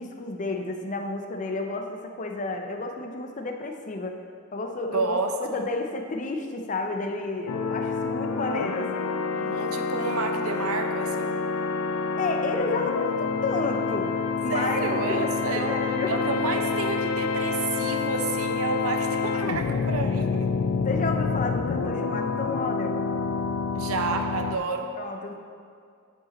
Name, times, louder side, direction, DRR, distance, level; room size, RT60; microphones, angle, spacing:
voice 1, 0.0-4.2 4.5-9.1 12.2-14.1 14.4-15.3 15.5-16.1 20.8-23.0 25.0-25.4, left 3 dB, 35° left, 4 dB, 0.6 m, -31 dB
voice 2, 4.9-5.6 9.3-11.4 14.5-15.7 16.1-20.5 23.7-24.9, right 4 dB, 85° right, 5 dB, 0.7 m, -30 dB
sound 1, 7.5-24.6, left 4 dB, 90° left, 0.4 m, -28 dB
9.3 x 5.0 x 4.1 m, 2.3 s
head